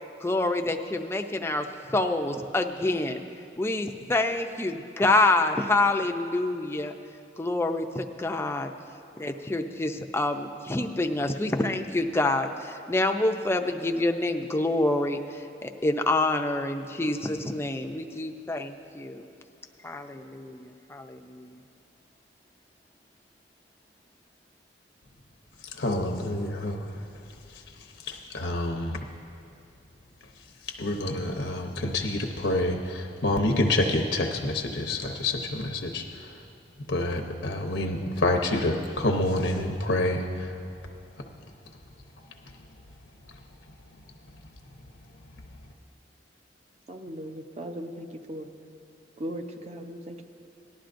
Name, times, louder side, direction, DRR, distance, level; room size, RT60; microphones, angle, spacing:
voice 1, 0.2-3.2 3.6-6.9 7.4-8.7 9.2-19.2 19.8-21.5, left 2 dB, 15° left, 5 dB, 0.5 m, -27 dB
voice 2, 25.8-27.0 28.0-29.0 30.7-36.3 36.9-40.5, left 1 dB, 75° left, 3 dB, 0.8 m, -27 dB
voice 3, 46.9-48.5 49.2-50.2, equal, 40° right, 5 dB, 0.7 m, -38 dB
18.0 x 11.5 x 2.6 m, 2.6 s
head